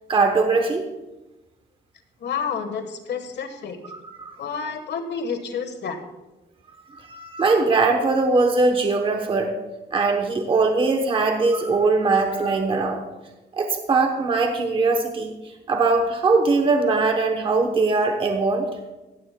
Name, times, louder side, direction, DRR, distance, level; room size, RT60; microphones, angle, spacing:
voice 1, 0.1-0.9 3.9-4.3 7.0-9.5 9.9-13.0 13.5-15.3 15.7-18.6, right 3 dB, 30° right, 4 dB, 0.9 m, -21 dB
voice 2, 2.2-3.9 4.4-6.0, left 6 dB, 70° left, 8 dB, 1.3 m, -30 dB
15.5 x 14.5 x 2.2 m, 1.1 s
wide cardioid pair, 180°, 19 cm